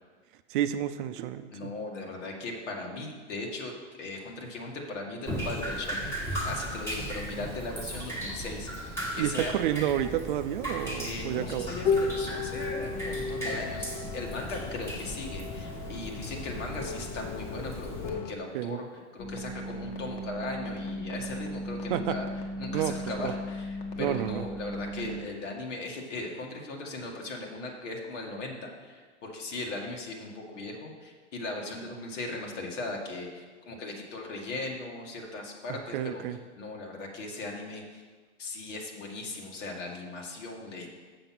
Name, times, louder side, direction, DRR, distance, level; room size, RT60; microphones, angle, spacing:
voice 1, 0.5-1.7 9.2-11.7 18.5-18.8 21.9-22.1 22.7-22.9 23.2-23.3 24.0-24.4 35.9-36.4, right 11 dB, 45° right, 10 dB, 0.5 m, -30 dB
voice 2, 1.5-3.7 4.0-9.6 11.0-22.3 22.6-38.0 38.4-40.9, left 2 dB, 80° left, 1 dB, 2.0 m, -38 dB
Drip, 5.3-18.1, right 1 dB, 5° left, 1.3 m, -37 dB
sound 1, 10.9-18.3, left 5 dB, 30° left, 0.4 m, -35 dB
sound 2, 19.2-25.2, equal, 55° left, 1.5 m, -37 dB
7.1 x 6.8 x 5.9 m, 1.5 s
supercardioid pair, 150°, 36 cm